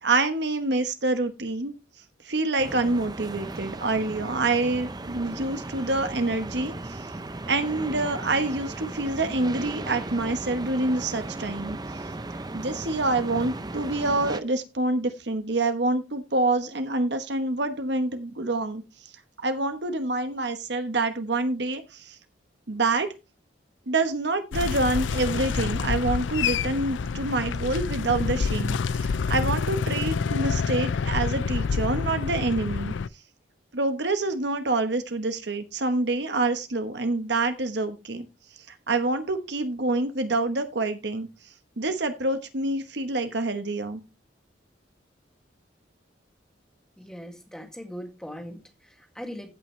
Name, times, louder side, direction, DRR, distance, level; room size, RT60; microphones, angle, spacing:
voice 1, 0.0-1.7 2.2-7.0 7.5-11.8 12.5-18.8 19.4-22.2 22.7-23.2 23.9-32.9 33.7-38.3 38.7-41.3 41.8-44.0, right 2 dB, 65° right, 8 dB, 1.1 m, -27 dB
sound 1, 2.6-14.4, right 2 dB, 20° right, 0.6 m, -36 dB
sound 2, 24.5-33.1, left 5 dB, 80° left, 0.4 m, -27 dB
voice 2, 47.0-49.5, equal, 5° left, 4 dB, 1.9 m, -40 dB
15.5 x 5.7 x 3.2 m, 0.26 s
head